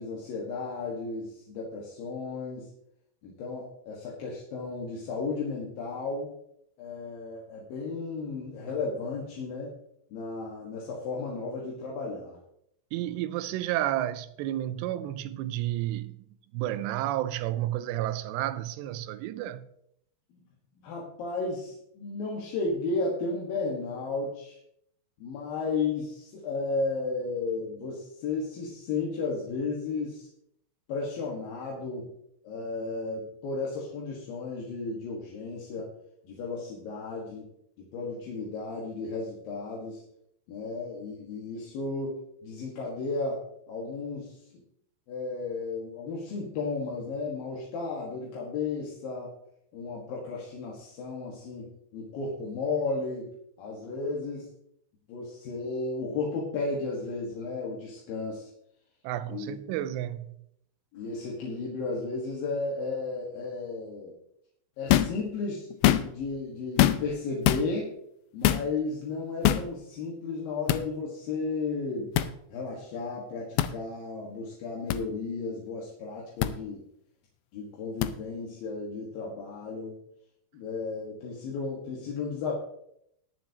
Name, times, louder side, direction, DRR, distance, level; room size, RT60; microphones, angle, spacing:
voice 1, 0.0-2.7 3.2-6.3 6.8-9.7 10.1-12.4 20.8-24.6 25.2-30.3 30.9-32.1 32.4-35.9 36.2-37.5 37.8-40.0 40.5-44.4 45.1-49.3 49.7-53.3 53.6-54.5 55.1-58.5 59.3-59.6 60.9-64.1 64.8-65.7 66.0-67.9 68.3-72.1 72.5-76.8 77.5-80.0 80.5-82.5, left 3 dB, 60° left, 3.0 m, -34 dB
voice 2, 12.9-16.2 16.5-19.7 59.0-60.3, right 13 dB, 80° right, 2.7 m, -31 dB
sound 1, 64.9-65.2 65.7-66.3 66.8-67.2 67.4-67.6 68.4-68.7 69.4-69.7 70.7-70.8 72.1-72.3 73.6-73.7 74.9-75.0 76.4-76.5 78.0-78.1, left 13 dB, 85° left, 2.2 m, -23 dB
21.0 x 7.2 x 2.9 m
omnidirectional pair, 5.1 m